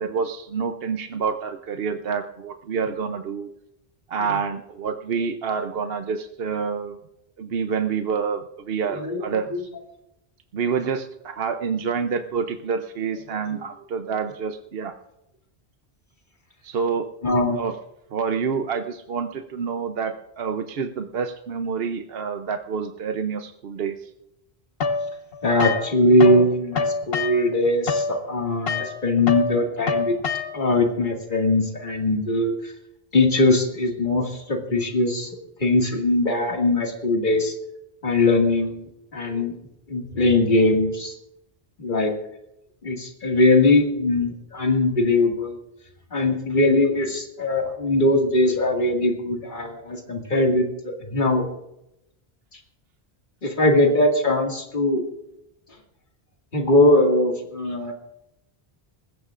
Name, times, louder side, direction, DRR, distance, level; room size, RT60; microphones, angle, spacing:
voice 1, 0.0-3.5 4.1-7.0 7.4-9.5 10.5-14.9 16.6-17.1 17.6-17.7 18.1-24.1, right 6 dB, 70° right, 6 dB, 1.0 m, -27 dB
voice 2, 8.9-9.2 9.5-9.6 13.5-13.6 17.2-17.6 25.4-30.1 30.5-32.7 33.1-35.3 35.6-37.5 38.0-39.5 39.9-41.1 41.8-42.1 42.8-45.6 46.1-51.5 53.4-55.0 56.5-57.9, left 2 dB, 50° left, 1 dB, 2.2 m, -21 dB
sound 1, 24.8-26.5 26.7-30.8, left 4 dB, 65° left, 1.2 m, -26 dB
20.5 x 15.5 x 2.5 m, 0.85 s
omnidirectional pair, 1.1 m